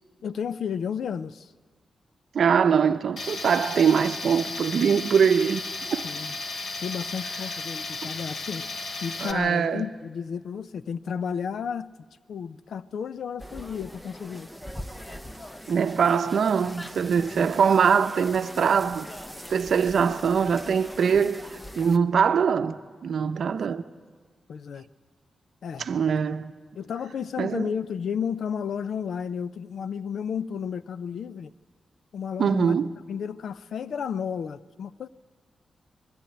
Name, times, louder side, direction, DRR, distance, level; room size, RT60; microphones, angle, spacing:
voice 1, 0.2-1.5 6.0-6.3 6.8-8.6 9.0-11.9 12.3-14.5 23.5-23.6 24.5-24.9 25.6-25.9 26.7-31.5 32.1-32.7 33.1-35.1, left 7 dB, 75° left, 0.5 m, -32 dB
voice 2, 2.3-5.6 5.9-6.1 9.2-9.8 15.7-19.1 19.5-21.4 21.8-23.8 25.8-26.5 27.4-27.7 32.4-32.9, right 6 dB, 60° right, 0.7 m, -22 dB
Tools, 3.2-9.3, left 3 dB, 50° left, 1.1 m, -34 dB
sound 1, 13.4-22.0, equal, 5° left, 0.7 m, -41 dB
20.5 x 14.5 x 9.1 m
wide cardioid pair, 155°, 0 cm